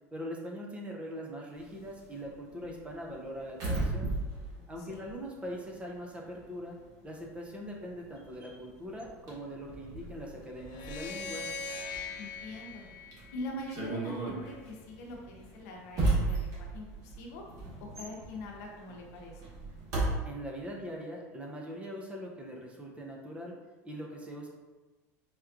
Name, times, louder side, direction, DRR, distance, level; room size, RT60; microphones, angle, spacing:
voice 1, 0.1-4.1 4.7-6.8 7.0-11.5 20.3-23.5 23.8-24.5, equal, 15° right, -1 dB, 0.6 m, -41 dB
sound 1, 1.6-6.0 6.2-20.2, right 2 dB, 45° right, 1.4 m, -36 dB
voice 2, 4.8-5.1 12.2-12.9 13.3-17.4 17.8-19.4, left 1 dB, 80° left, -1 dB, 0.7 m, -43 dB
sound 2, 10.7-14.0, left 4 dB, 60° left, 0.4 m, -41 dB
4.3 x 2.3 x 2.5 m, 1.2 s
supercardioid pair, 105°, 8 cm